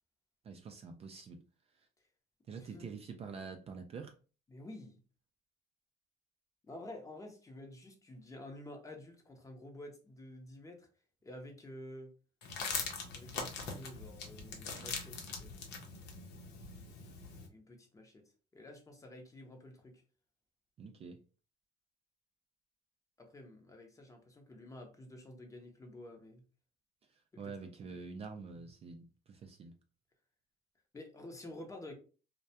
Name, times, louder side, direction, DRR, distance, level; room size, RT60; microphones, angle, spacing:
voice 1, 0.4-1.4 2.5-4.1 20.8-21.2 27.4-29.7, right 5 dB, 35° right, 0.4 m, -46 dB
voice 2, 2.5-2.9 4.5-5.0 6.6-10.9 11.2-12.1 13.1-15.5 17.5-18.2 18.5-20.0 23.2-26.4 27.3-28.0 30.9-31.9, left 1 dB, 20° left, 0.6 m, -50 dB
sound 1, 12.4-17.5, left 4 dB, 85° left, 0.7 m, -42 dB
2.2 x 2.1 x 2.7 m
cardioid pair, 110°, 17 cm